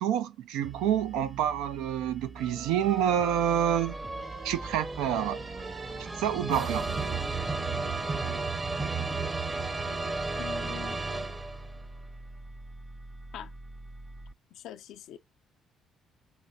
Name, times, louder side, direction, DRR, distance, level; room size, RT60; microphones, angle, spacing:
voice 1, 0.0-4.0 4.4-5.4 6.0-6.9, right 10 dB, 85° right, 0.4 m, -28 dB
sound 1, 0.6-14.3, right 3 dB, 10° right, 0.4 m, -46 dB
sound 2, 2.4-11.9, right 3 dB, 30° right, 0.8 m, -34 dB
voice 2, 10.4-11.2 13.3-13.5 14.5-15.2, left 12 dB, 80° left, 0.4 m, -43 dB
4.1 x 3.3 x 2.4 m
supercardioid pair, 75°, 0 cm